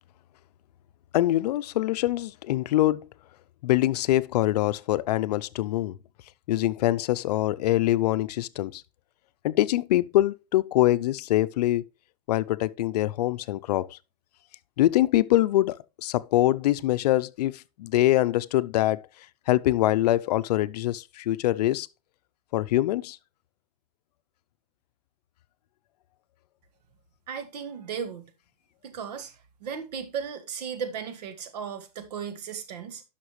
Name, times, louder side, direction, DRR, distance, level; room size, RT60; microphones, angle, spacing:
voice 1, 1.1-3.1 3.6-6.0 6.5-8.8 9.4-11.8 12.3-14.0 14.8-19.0 19.5-21.9 22.5-23.2, left 15 dB, 85° left, 0.5 m, -24 dB
voice 2, 27.3-28.3 28.8-29.3 29.6-33.0, right 7 dB, 90° right, 1.6 m, -35 dB
11.5 x 5.9 x 3.1 m
supercardioid pair, 135°, 20 cm